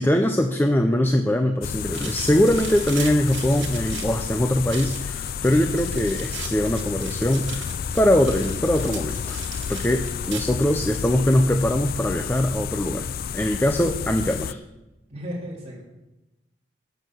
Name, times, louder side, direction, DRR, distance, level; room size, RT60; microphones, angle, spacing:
voice 1, 0.0-9.4 9.7-14.6, left 1 dB, 10° left, 5 dB, 0.6 m, -22 dB
sound 1, 1.6-14.5, left 7 dB, 50° left, 0.3 m, -31 dB
sound 2, 1.9-10.7, right 7 dB, 80° right, 1.9 m, -39 dB
voice 2, 15.1-15.8, equal, 35° right, -3 dB, 3.6 m, -35 dB
12.0 x 8.1 x 6.2 m, 0.99 s
head